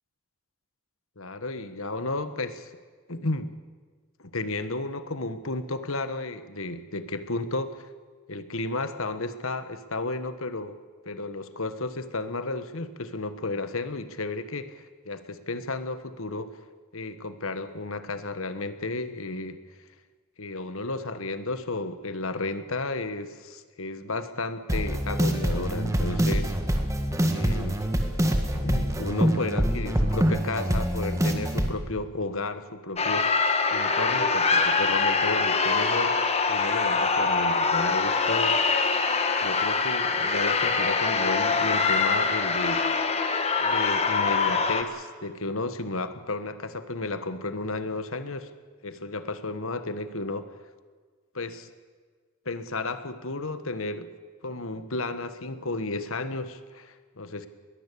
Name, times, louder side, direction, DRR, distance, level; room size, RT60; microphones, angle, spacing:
voice 1, 1.2-2.7 3.1-3.5 4.2-7.9 8.3-10.8 11.0-16.6 16.9-19.6 20.4-26.5 27.3-27.9 28.5-33.4 33.7-36.2 36.5-38.6 39.4-42.8 43.6-48.5 48.8-50.5 51.3-51.7 52.4-54.1 54.4-57.5, left 2 dB, 75° left, 11 dB, 1.5 m, -33 dB
sound 1, 24.7-31.7, equal, 15° right, 1.7 m, -25 dB
sound 2, 33.0-44.8, left 4 dB, 30° left, 1.5 m, -24 dB
22.0 x 18.0 x 8.5 m, 1.5 s
head